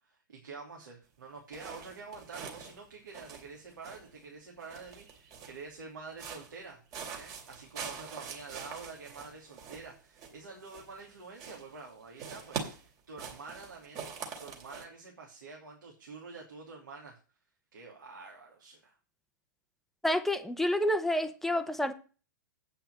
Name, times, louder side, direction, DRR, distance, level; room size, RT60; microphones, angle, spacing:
voice 1, 0.0-6.8 7.1-14.0 14.4-17.2 17.7-18.9, right 4 dB, 75° right, 3.0 m, -47 dB
sound 1, 1.5-4.2 4.6-5.7 6.1-6.6 6.9-11.1 11.3-11.9 12.2-14.8, right 6 dB, 35° right, 2.9 m, -44 dB
voice 2, 20.0-21.9, left 1 dB, ahead, 0.9 m, -29 dB
8.9 x 5.7 x 7.7 m
figure-of-eight pair, 110°, 11 cm